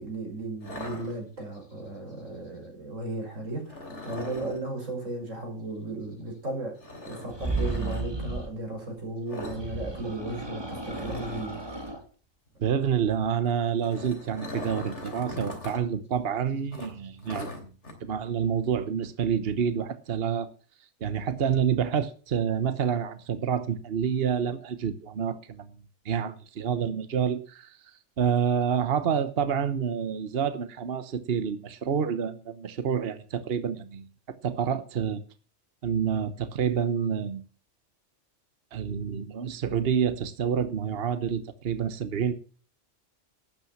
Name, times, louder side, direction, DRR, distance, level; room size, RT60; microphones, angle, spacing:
voice 1, 0.0-11.7, right 2 dB, 85° right, 2 dB, 6.0 m, -35 dB
sound 1, 0.6-1.6 3.7-4.6 6.8-8.0 9.3-9.6 9.9-10.1 10.4-10.5 10.9-12.0 13.6-15.8 16.1-16.2 16.7-17.9, left 2 dB, 65° left, 3.6 m, -40 dB
sound 2, 7.3-8.5 9.4-12.0, right 3 dB, 20° right, 2.0 m, -34 dB
voice 2, 12.6-17.7 18.0-20.5 21.0-25.7 26.0-27.8 28.2-34.1 34.4-35.2 35.8-37.4 38.7-42.3, right 7 dB, 55° right, 12 dB, 1.2 m, -28 dB
12.5 x 8.9 x 7.4 m, 0.39 s
omnidirectional pair, 1.3 m